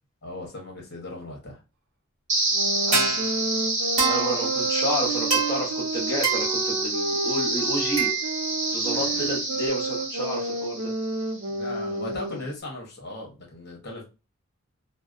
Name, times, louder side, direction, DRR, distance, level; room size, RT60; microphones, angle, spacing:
voice 1, 0.2-1.6 8.9-9.3 11.5-14.0, left 1 dB, 50° left, -1 dB, 0.9 m, -38 dB
sound 1, 2.3-11.3, right 3 dB, 35° right, 0.9 m, -26 dB
sound 2, 2.5-12.5, right 2 dB, 60° right, 0.4 m, -31 dB
voice 2, 2.9-3.2 4.1-8.1 8.7-10.9, right 1 dB, 15° left, -4 dB, 0.8 m, -30 dB
2.6 x 2.0 x 2.4 m, 0.30 s
head